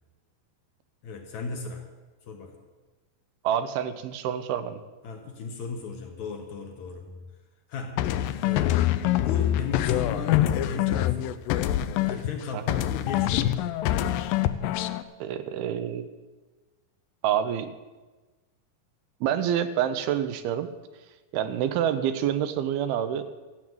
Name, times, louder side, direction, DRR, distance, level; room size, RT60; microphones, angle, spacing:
voice 1, 1.0-1.9 2.2-2.6 5.0-7.3 7.7-8.1 8.4-11.4 12.0-13.7, left 5 dB, 65° left, 3 dB, 2.1 m, -36 dB
voice 2, 3.4-4.8 12.5-12.6 15.2-16.1 17.2-17.7 19.2-20.7 21.3-23.2, right 9 dB, 85° right, 10 dB, 2.7 m, -27 dB
sound 1, 8.0-12.4 12.7-15.0, left 13 dB, 80° left, 2.1 m, -25 dB
13.5 x 8.6 x 7.9 m, 1.2 s
omnidirectional pair, 4.4 m